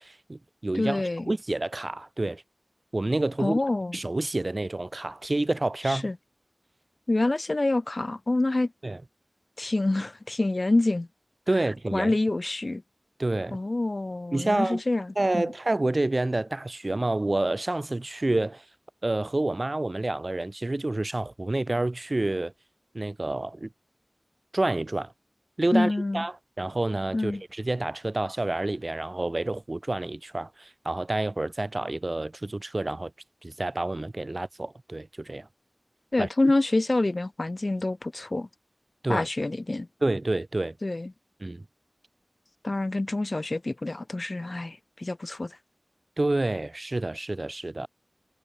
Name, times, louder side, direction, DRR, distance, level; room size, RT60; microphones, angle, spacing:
voice 1, 0.0-2.4 2.9-3.6 3.9-6.1 8.8-9.0 11.5-12.1 13.2-13.6 14.3-14.8 15.2-18.6 19.0-22.5 22.9-23.7 24.5-25.1 25.6-33.1 33.4-35.5 36.2-36.3 39.0-39.3 40.0-40.7 41.4-41.6 46.2-47.9, right 2 dB, 55° right, 1.9 m, -28 dB
voice 2, 0.7-1.3 3.4-4.0 5.8-6.2 7.1-8.7 9.6-11.1 11.9-12.8 13.5-15.5 25.7-26.2 27.1-27.4 36.1-38.5 39.1-39.9 40.8-41.1 42.6-45.6, left 2 dB, 60° left, 2.6 m, -27 dB
wide cardioid pair, 45°, 0 cm